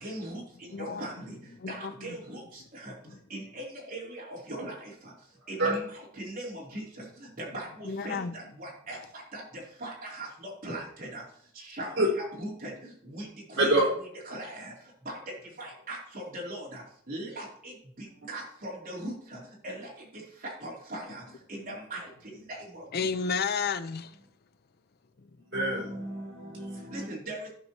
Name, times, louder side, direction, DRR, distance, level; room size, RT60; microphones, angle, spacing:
voice 1, 0.0-5.8 6.2-13.7 14.3-23.1 26.7-27.5, right 1 dB, 45° right, 3.4 m, -40 dB
voice 2, 0.7-1.0 1.6-2.1 3.1-3.2 7.8-8.3 22.9-24.1, left 5 dB, 50° left, 0.5 m, -32 dB
voice 3, 25.4-27.1, right 2 dB, 65° right, 4.4 m, -27 dB
15.5 x 5.5 x 3.0 m
head